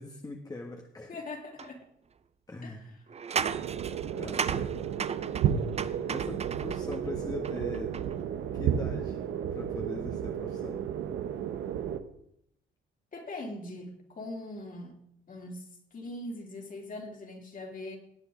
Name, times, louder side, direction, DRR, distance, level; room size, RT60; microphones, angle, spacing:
voice 1, 0.0-1.2 2.5-3.0 4.2-4.7 6.0-8.0 8.5-9.2 9.5-10.9, left 2 dB, 20° left, 1 dB, 1.4 m, -41 dB
voice 2, 1.1-1.8 2.6-2.8 13.1-15.0 15.3-18.0, left 2 dB, 45° left, 1 dB, 3.1 m, -41 dB
sound 1, 1.6-1.7 3.1-7.0 7.4-8.2, right 6 dB, 35° right, 0.5 m, -35 dB
sound 2, 3.3-12.0, right 9 dB, 85° right, 0.9 m, -32 dB
18.0 x 8.4 x 3.8 m, 0.73 s
cardioid pair, 90°, 20 cm